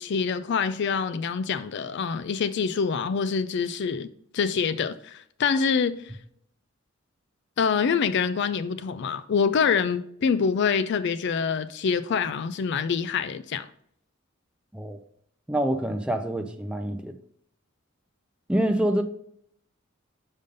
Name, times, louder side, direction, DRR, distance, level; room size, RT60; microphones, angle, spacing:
voice 1, 0.0-4.1 4.3-6.0 7.6-13.7, left 6 dB, 60° left, 0.4 m, -25 dB
voice 2, 15.5-17.2 18.5-19.0, right 1 dB, 5° right, 0.5 m, -26 dB
5.4 x 5.3 x 5.2 m
head